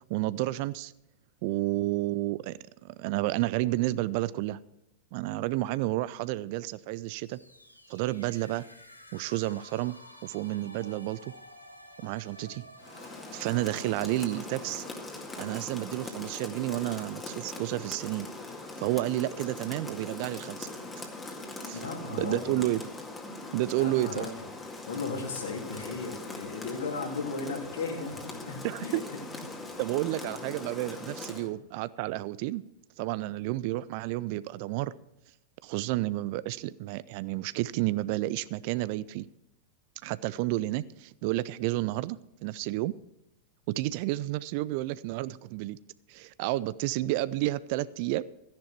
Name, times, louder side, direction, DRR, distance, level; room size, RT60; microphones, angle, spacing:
voice 1, 0.1-0.9 1.4-4.6 5.1-7.4 7.9-8.7 9.1-9.9 10.2-11.3 12.0-12.6 13.3-14.9 15.4-18.3 18.8-20.7 21.6-21.8 22.2-22.8 23.5-24.3 28.6-29.0 29.8-32.6 33.0-34.9 35.6-39.3 40.0-42.9 43.7-45.8 46.1-48.2, right 17 dB, 45° right, 19 dB, 0.4 m, -31 dB
sound 1, 7.0-16.7, left 1 dB, 90° left, 1.5 m, -52 dB
Rain, 12.8-31.5, left 2 dB, 15° left, 2.0 m, -41 dB
voice 2, 21.7-22.6 23.8-24.3 24.9-29.0 31.3-31.5 43.7-43.8, left 4 dB, 65° left, 0 dB, 3.2 m, -36 dB
14.0 x 10.5 x 4.5 m, 0.88 s
figure-of-eight pair, 90°, 0 cm